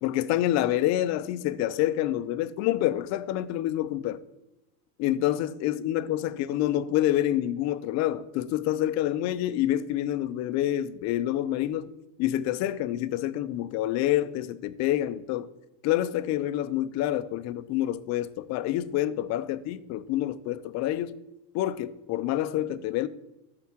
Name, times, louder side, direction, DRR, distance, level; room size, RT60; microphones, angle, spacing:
voice 1, 0.0-4.2 5.0-11.9 12.2-15.5 15.8-21.2 21.5-23.1, left 13 dB, 35° left, 0.5 m, -27 dB
12.5 x 4.7 x 7.2 m
supercardioid pair, 135°, 50 cm